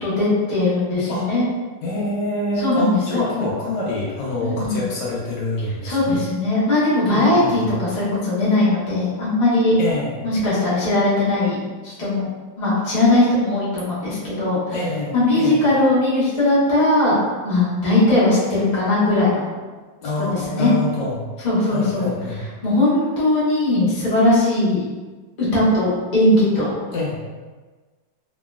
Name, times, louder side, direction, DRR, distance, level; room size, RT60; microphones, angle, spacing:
voice 1, 0.0-1.5 2.6-3.2 4.4-4.8 5.8-9.7 10.2-11.6 11.8-12.3 12.6-14.8 15.1-19.4 20.2-20.7 21.4-22.1 22.6-24.8 25.4-26.7, left 2 dB, 30° left, -9 dB, 0.9 m, -19 dB
voice 2, 1.8-6.2 7.1-7.8 9.8-10.3 13.7-13.9 14.7-15.6 20.0-21.2 21.6-22.4 26.9-27.2, left 2 dB, 80° left, -4 dB, 1.3 m, -26 dB
2.9 x 2.9 x 2.3 m, 1.3 s
omnidirectional pair, 2.0 m